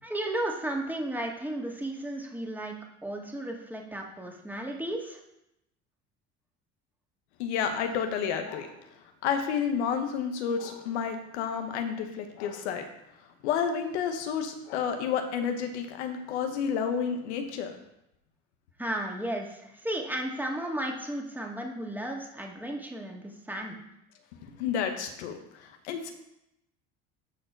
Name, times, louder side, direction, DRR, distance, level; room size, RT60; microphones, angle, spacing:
voice 1, 0.0-2.7 3.0-5.2 18.8-23.8, right 1 dB, 5° right, 0 dB, 2.0 m, -34 dB
voice 2, 7.4-8.8 9.2-12.9 13.4-17.7 24.4-26.1, left 7 dB, 90° left, 6 dB, 1.1 m, -30 dB
13.0 x 4.5 x 4.6 m, 0.85 s
supercardioid pair, 80°, 33 cm